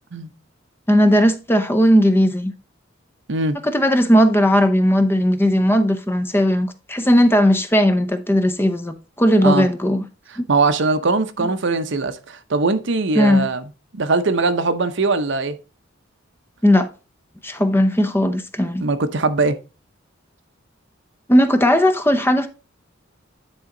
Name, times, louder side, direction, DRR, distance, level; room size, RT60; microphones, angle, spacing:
voice 1, 0.9-2.5 3.6-10.0 10.4-10.5 11.4-11.5 13.2-13.5 16.6-16.9 17.4-18.8 21.3-22.5, equal, 10° left, 0.7 m, -17 dB
voice 2, 10.5-13.7 13.9-15.6 18.8-19.6, right 3 dB, 65° right, 0.8 m, -20 dB
10.0 x 4.3 x 3.8 m
head